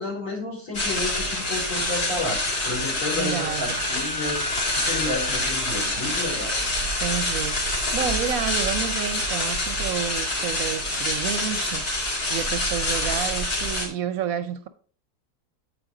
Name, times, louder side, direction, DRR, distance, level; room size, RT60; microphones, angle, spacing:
voice 1, 0.0-2.4 2.6-6.6, left 2 dB, 55° left, 4.8 m, -31 dB
sound 1, 0.7-13.9, left 1 dB, 80° left, 2.5 m, -26 dB
Wind instrument woodwind instrument, 2.1-9.9, left 2 dB, 20° left, 2.3 m, -39 dB
voice 2, 3.2-3.8 7.0-14.7, right 9 dB, 70° right, 0.9 m, -30 dB
8.6 x 5.0 x 3.7 m
omnidirectional pair, 1.6 m